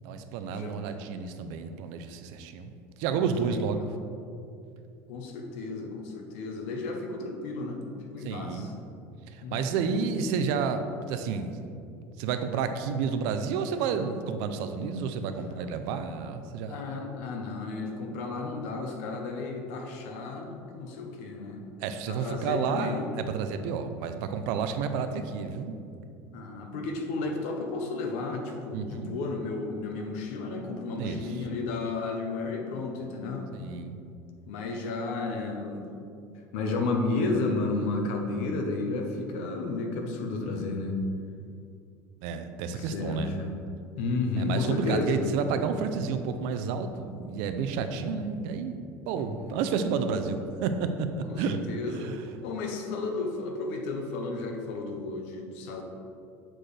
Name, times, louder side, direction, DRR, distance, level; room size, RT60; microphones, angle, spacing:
voice 1, 0.0-2.7 3.0-3.9 8.2-8.7 9.3-11.6 12.2-16.8 21.8-25.8 28.7-29.2 31.0-31.3 33.5-34.0 42.2-43.3 44.4-52.2, right 6 dB, 70° right, 8 dB, 0.5 m, -31 dB
voice 2, 3.1-3.6 5.1-7.8 8.1-8.7 9.4-9.9 16.7-21.6 22.1-23.1 26.3-33.5 34.5-35.8 36.5-41.0 42.7-43.5 44.0-45.3 47.9-48.0 49.1-49.6 51.3-52.1 52.4-55.8, left 3 dB, 85° left, 3 dB, 0.9 m, -32 dB
7.5 x 4.4 x 3.3 m, 2.5 s
cardioid pair, 165°, 7 cm